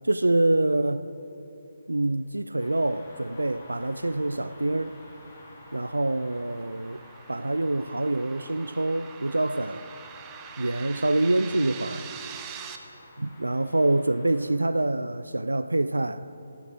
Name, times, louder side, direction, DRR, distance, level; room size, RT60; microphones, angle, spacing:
voice 1, 0.0-1.1 1.9-4.9 5.7-7.0 7.3-9.9 10.6-12.1 13.2-16.3, right 2 dB, 75° right, 0.4 m, -26 dB
sound 1, 2.6-14.5, left 1 dB, 25° left, 3.0 m, -50 dB
sound 2, 5.0-12.8, right 8 dB, 20° right, 0.6 m, -44 dB
11.5 x 8.6 x 7.3 m
figure-of-eight pair, 140°, 0 cm